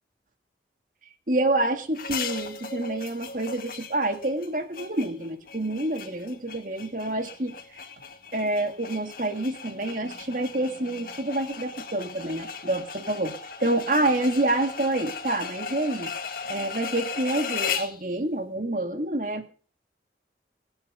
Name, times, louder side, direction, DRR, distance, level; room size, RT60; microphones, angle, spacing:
voice 1, 1.3-7.6 8.3-13.4 13.6-16.1 16.5-19.5, right 1 dB, 45° right, 6 dB, 2.0 m, -27 dB
sound 1, 1.9-18.0, left 5 dB, 55° left, 1.9 m, -37 dB
21.5 x 7.9 x 6.6 m, 0.41 s
head